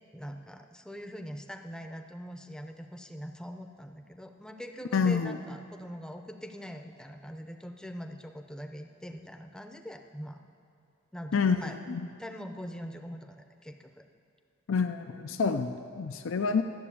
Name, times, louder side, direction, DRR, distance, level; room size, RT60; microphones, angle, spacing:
voice 1, 0.1-10.4 11.1-11.8 12.2-14.0 16.3-16.5, equal, 5° left, 5 dB, 0.6 m, -43 dB
voice 2, 4.9-5.4 11.3-12.0 14.7-16.6, left 5 dB, 70° left, 7 dB, 0.5 m, -28 dB
12.5 x 7.7 x 8.4 m, 2.5 s
head